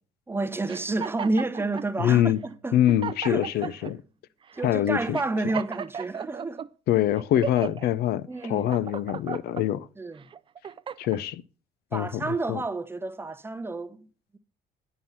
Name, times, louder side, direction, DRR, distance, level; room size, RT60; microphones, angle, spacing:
voice 1, 0.3-2.8 3.2-3.7 4.5-6.6 8.3-8.7 10.0-10.3 11.9-14.1, right 2 dB, 15° right, 0.8 m, -30 dB
sound 1, 0.7-1.9 2.5-2.6 2.9-3.9 4.5-4.7 5.1-6.7 7.1-7.9 8.4-9.6 10.2-11.2, right 7 dB, 30° right, 0.4 m, -35 dB
voice 2, 2.0-2.4 2.7-4.0 4.6-5.2 6.9-9.9 11.0-11.4 11.9-12.6, left 12 dB, 70° left, 0.5 m, -24 dB
9.5 x 5.6 x 7.2 m
cardioid pair, 110°, 17 cm